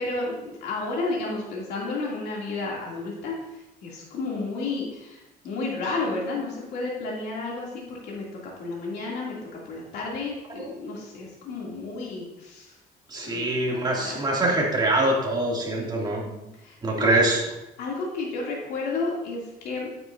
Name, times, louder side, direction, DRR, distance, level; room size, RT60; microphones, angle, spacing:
voice 1, 0.0-8.3 8.6-9.4 9.6-12.7 13.2-14.2 15.9-17.3 17.8-19.9, left 3 dB, 75° left, -4 dB, 2.7 m, -32 dB
voice 2, 13.1-16.2 16.8-17.4, right 2 dB, 25° right, -3 dB, 2.5 m, -24 dB
9.2 x 8.7 x 2.7 m, 0.94 s
cardioid pair, 110°, 17 cm